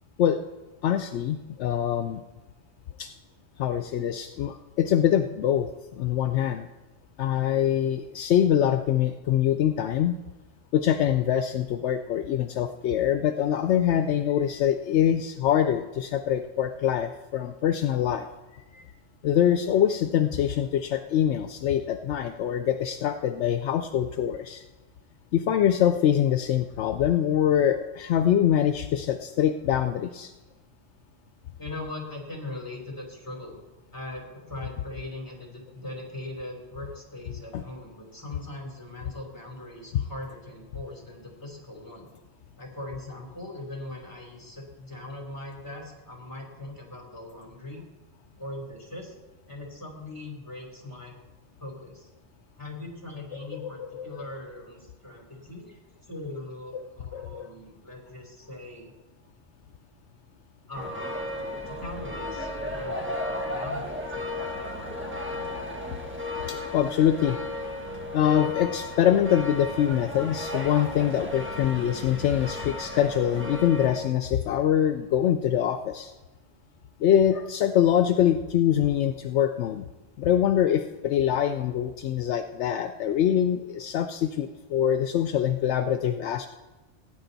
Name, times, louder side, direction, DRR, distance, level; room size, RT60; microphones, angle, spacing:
voice 1, 0.8-2.2 3.0-3.1 3.6-6.7 7.2-10.2 10.7-18.3 18.7-18.8 19.2-24.6 25.3-30.3 37.5-37.6 53.6-54.2 56.7-56.8 57.1-57.5 66.5-67.4 68.1-76.1 77.0-79.8 80.2-86.5, left 10 dB, 75° left, 8 dB, 0.8 m, -24 dB
voice 2, 31.6-33.6 33.9-42.1 42.6-47.8 48.3-49.1 49.5-51.1 51.6-52.1 52.6-55.8 56.1-58.9 60.7-61.3 61.6-65.4, left 2 dB, 15° left, 0 dB, 3.1 m, -40 dB
sound 1, 60.7-74.0, left 1 dB, 10° right, 1.4 m, -34 dB
17.0 x 9.4 x 4.0 m, 1.1 s
omnidirectional pair, 1.2 m